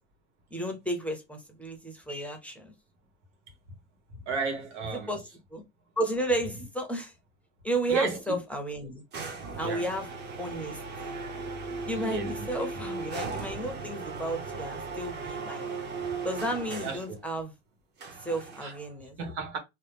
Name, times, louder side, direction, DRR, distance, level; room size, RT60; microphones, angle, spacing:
voice 1, 0.5-2.7 5.1-5.2 5.5-5.6 6.0-7.1 7.6-9.0 9.6-10.1 10.4-11.1 11.9-15.8 16.2-17.5 18.2-19.1, right 1 dB, 5° left, 0.5 m, -33 dB
voice 2, 4.3-5.1 6.6-6.7 7.9-8.4 9.6-9.9 11.9-12.5 16.8-17.2 18.6-18.7 19.2-19.6, right 4 dB, 90° right, 1.2 m, -32 dB
sound 1, 9.1-17.1 18.0-18.9, right 4 dB, 30° right, 0.7 m, -37 dB
2.9 x 2.0 x 3.3 m
supercardioid pair, 120°, 34 cm